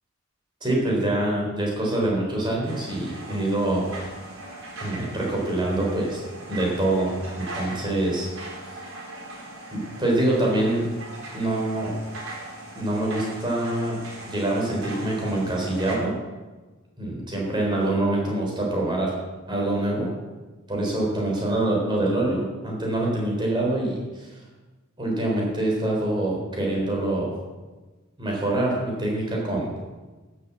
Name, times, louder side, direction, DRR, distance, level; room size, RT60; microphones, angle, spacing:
voice 1, 0.6-3.9 4.8-6.2 6.5-8.3 9.7-10.9 11.3-12.0 12.8-14.0 14.3-16.1 17.0-19.1 19.5-20.1 20.7-24.3 25.0-27.3 28.2-29.9, right 1 dB, 20° right, -2 dB, 4.1 m, -25 dB
sound 1, 2.6-16.0, right 2 dB, 70° right, 3.9 m, -40 dB
11.5 x 7.7 x 7.5 m, 1.3 s
head